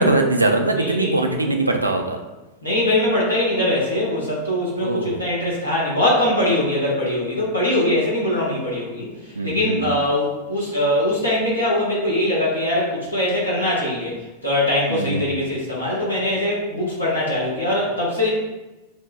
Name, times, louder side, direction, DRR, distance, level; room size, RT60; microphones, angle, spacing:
voice 1, 0.0-2.2 4.8-5.2 9.4-9.9 14.9-15.2, right 2 dB, 80° right, 4 dB, 0.3 m, -21 dB
voice 2, 0.8-1.5 2.6-9.1 9.4-18.3, left 1 dB, 85° left, -7 dB, 1.2 m, -22 dB
5.1 x 2.2 x 2.2 m, 1.1 s
figure-of-eight pair, 90°, 0 cm